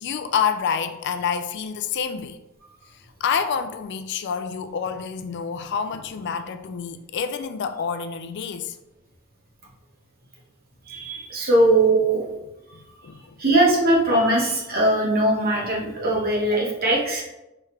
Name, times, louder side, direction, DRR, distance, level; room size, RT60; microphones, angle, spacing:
voice 1, 0.0-2.4 3.2-8.8 12.8-13.4, left 6 dB, 50° left, 0.3 m, -28 dB
voice 2, 10.9-12.2 13.4-17.2, right 1 dB, 45° right, 1.2 m, -20 dB
4.8 x 3.5 x 3.2 m
head